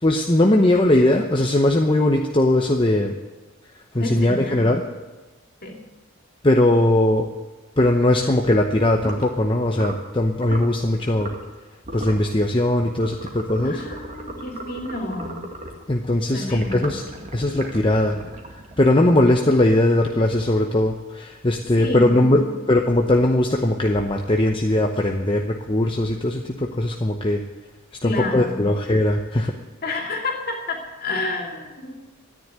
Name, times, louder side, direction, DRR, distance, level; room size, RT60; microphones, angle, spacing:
voice 1, 0.0-3.1 3.9-4.8 6.4-7.3 7.8-11.3 11.9-13.8 15.9-17.0 17.3-18.2 18.8-27.4 28.0-29.5, left 1 dB, 25° left, 2 dB, 0.8 m, -19 dB
voice 2, 4.0-4.8 5.6-5.8 13.6-15.5 16.3-17.0 21.8-22.5 28.0-28.7 29.8-32.0, left 2 dB, 45° left, 1 dB, 2.9 m, -30 dB
sound 1, 8.9-9.3 9.7-10.1 10.4-10.7 11.2-11.5 11.8-12.3 13.0-15.8 16.5-19.3, right 1 dB, 35° right, 2.0 m, -36 dB
13.0 x 10.5 x 9.2 m, 1.1 s
head